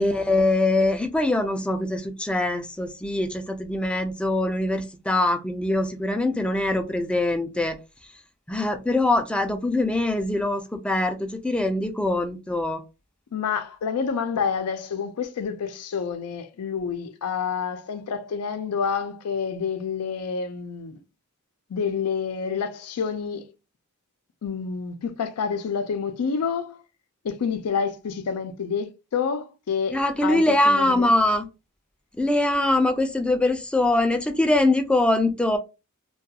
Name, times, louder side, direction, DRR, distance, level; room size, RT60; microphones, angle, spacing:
voice 1, 0.0-8.1 8.5-12.8 29.9-31.5 32.2-35.6, left 2 dB, 5° left, 0.3 m, -23 dB
voice 2, 13.3-21.0 21.7-23.5 24.4-26.8 27.2-30.0 30.2-31.1, left 6 dB, 85° left, 0.4 m, -28 dB
2.3 x 2.3 x 2.7 m
head